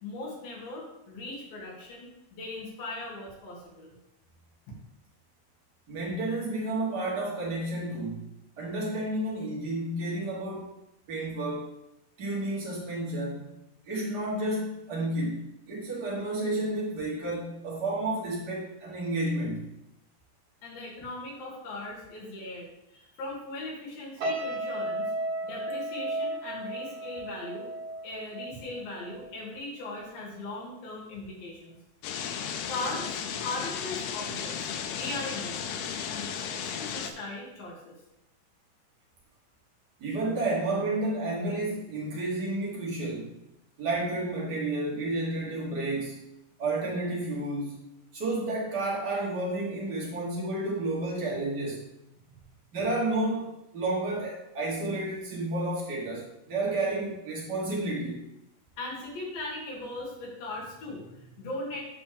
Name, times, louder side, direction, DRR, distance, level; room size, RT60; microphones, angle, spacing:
voice 1, 0.0-3.9 20.6-25.1 25.4-27.7 28.0-31.8 32.4-33.1 33.4-34.7 35.0-37.9 58.8-61.8, left 2 dB, 70° left, -4 dB, 3.6 m, -39 dB
voice 2, 5.9-8.3 8.6-10.7 11.1-11.7 12.2-13.5 13.8-19.7 40.0-43.4 43.8-46.2 46.6-47.8 48.1-51.8 52.7-58.2, right 2 dB, 90° right, -5 dB, 0.9 m, -31 dB
sound 1, 24.2-29.5 29.8-30.1, right 1 dB, 70° right, 2.1 m, -34 dB
sound 2, 32.0-37.1, left 7 dB, 85° left, 2.7 m, -34 dB
8.6 x 3.3 x 6.7 m, 0.87 s
omnidirectional pair, 4.5 m